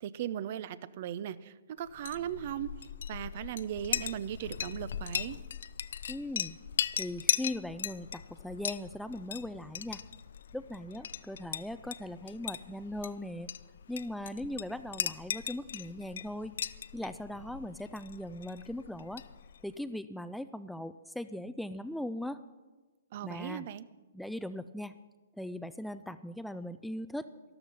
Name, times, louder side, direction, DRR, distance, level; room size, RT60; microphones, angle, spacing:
voice 1, 0.0-2.7 3.1-5.4 23.1-23.9, right 10 dB, 50° right, 17 dB, 0.6 m, -38 dB
Chink clink, 1.9-19.7, left 8 dB, 70° left, 0.5 m, -38 dB
voice 2, 6.1-6.6 7.0-10.0 10.5-13.5 13.9-16.5 16.9-19.2 19.6-22.4 23.2-23.7 24.1-24.9 25.4-27.3, left 1 dB, ahead, 12 dB, 0.4 m, -39 dB
13.0 x 12.0 x 5.4 m, 1.2 s
hypercardioid pair, 140°, 0 cm